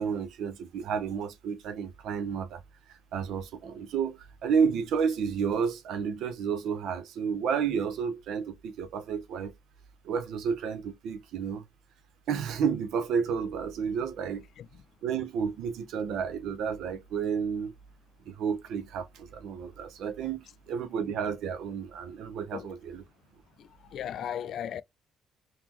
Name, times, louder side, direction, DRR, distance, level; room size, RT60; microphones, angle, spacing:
voice 1, 0.0-2.6 3.1-9.5 10.0-11.6 12.3-14.4 15.0-17.7 18.3-23.0, right 6 dB, 85° right, 0.7 m, -31 dB
voice 2, 23.6-24.8, left 9 dB, 70° left, 0.4 m, -37 dB
3.6 x 2.8 x 3.0 m
cardioid pair, 90°, 0 cm